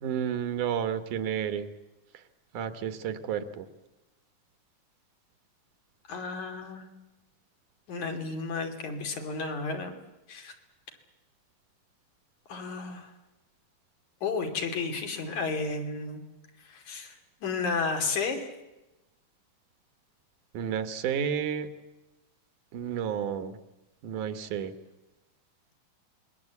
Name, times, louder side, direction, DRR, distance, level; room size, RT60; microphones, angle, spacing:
voice 1, 0.0-1.7 2.5-3.7 20.5-21.7 22.7-23.6 24.0-24.7, right 8 dB, 75° right, 10 dB, 2.8 m, -31 dB
voice 2, 6.1-6.9 7.9-9.9 10.3-10.5 12.5-13.1 14.2-16.2 16.6-17.2 17.4-18.5, left 4 dB, 65° left, 4 dB, 4.1 m, -32 dB
27.0 x 21.5 x 8.3 m, 1.0 s
omnidirectional pair, 3.7 m